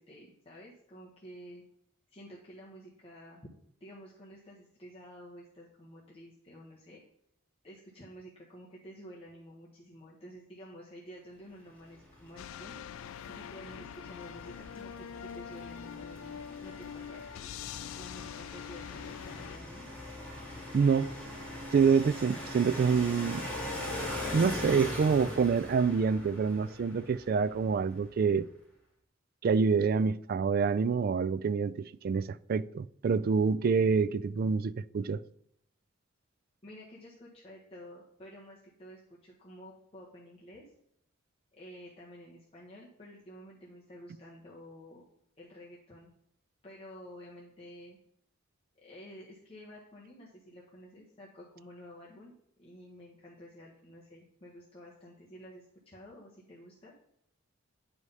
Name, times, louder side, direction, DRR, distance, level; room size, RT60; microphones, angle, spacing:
voice 1, 0.0-1.6 2.1-3.5 3.8-7.0 7.6-12.8 13.3-17.2 17.9-19.9 36.6-40.6 41.5-45.0 45.4-46.1 46.6-48.0 48.7-56.9, equal, 30° left, 1.4 m, -51 dB
sound 1, 11.9-28.1, left 1 dB, 5° left, 2.4 m, -42 dB
sound 2, 12.4-19.6, left 9 dB, 80° left, 0.3 m, -44 dB
voice 2, 20.7-21.1 21.7-23.4 24.3-28.5 29.4-35.2, right 5 dB, 45° right, 0.3 m, -27 dB
9.4 x 4.9 x 5.5 m
head